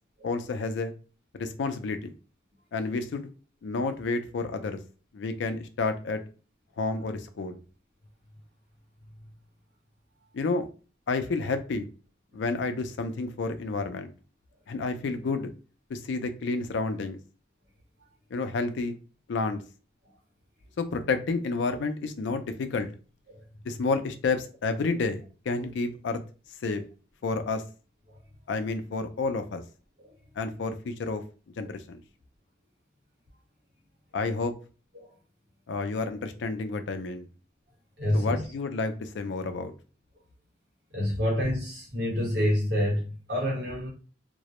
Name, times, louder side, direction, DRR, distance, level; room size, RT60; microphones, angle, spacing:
voice 1, 0.2-0.9 1.3-2.1 2.7-3.3 3.6-4.8 5.1-6.2 6.8-7.6 10.3-10.7 11.1-11.9 12.3-14.1 14.7-15.5 15.9-17.2 18.3-18.9 19.3-19.6 20.8-22.9 23.7-26.2 26.6-26.8 27.2-27.6 28.5-29.6 30.4-31.2 31.6-32.0 34.1-34.5 35.7-37.3 38.1-39.7, left 3 dB, 75° left, 0.4 m, -30 dB
voice 2, 38.0-38.4 40.9-43.9, left 1 dB, 60° right, 1.1 m, -28 dB
2.2 x 2.0 x 2.9 m
head